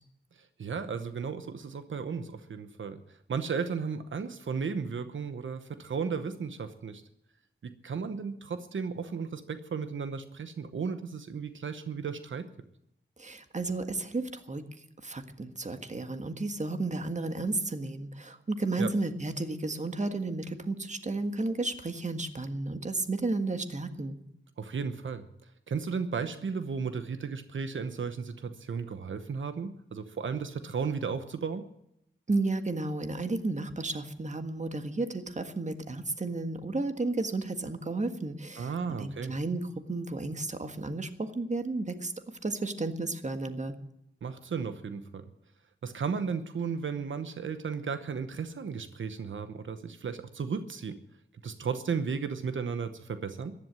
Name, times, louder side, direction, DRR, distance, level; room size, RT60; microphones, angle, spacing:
voice 1, 0.4-7.0 7.6-12.5 18.8-18.9 24.6-25.3 25.7-31.7 38.6-39.3 44.2-45.2 45.8-51.0 51.4-53.5, right 5 dB, 85° right, 10 dB, 0.9 m, -34 dB
voice 2, 13.2-14.6 15.0-24.2 32.3-42.1 42.4-43.7, right 2 dB, 40° right, 8 dB, 1.6 m, -33 dB
15.0 x 11.5 x 7.6 m, 0.81 s
wide cardioid pair, 75°, 19 cm